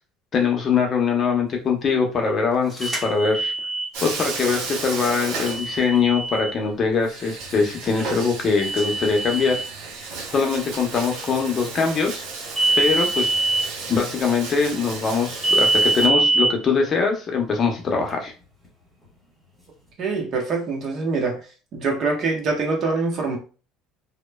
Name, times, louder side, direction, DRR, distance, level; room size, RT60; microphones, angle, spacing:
voice 1, 0.3-3.5 4.0-9.6 10.3-12.2 12.8-13.4 13.9-18.3, left 5 dB, 40° left, 2 dB, 0.7 m, -22 dB
sound 1, 2.8-3.9 5.5-6.6 8.6-9.6 12.5-13.6 15.4-16.5, right 2 dB, 10° right, 1.4 m, -22 dB
Bathtub (filling or washing), 3.9-6.2 6.5-6.6 7.0-16.1, right 4 dB, 75° right, 0.8 m, -34 dB
voice 2, 20.0-21.4 21.7-23.4, right 4 dB, 50° right, 1 dB, 0.8 m, -24 dB
2.9 x 2.1 x 2.2 m, 0.35 s
supercardioid pair, 105°, 0 cm